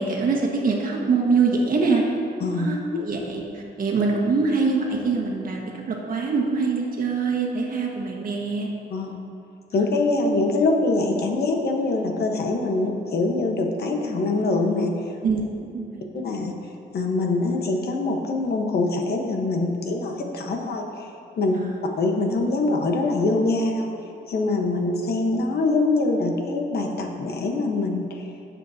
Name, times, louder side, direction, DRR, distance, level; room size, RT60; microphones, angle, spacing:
voice 1, 0.0-2.0 2.5-8.7 15.2-15.4 15.7-16.0 21.6-21.8, right 4 dB, 55° right, -1 dB, 1.6 m, -24 dB
voice 2, 9.7-14.9 16.2-16.5 16.9-21.1 21.4-21.6 22.0-23.9 24.3-28.2, left 2 dB, 60° left, 2 dB, 1.2 m, -24 dB
16.5 x 7.4 x 2.8 m, 2.7 s
cardioid pair, 145°, 18 cm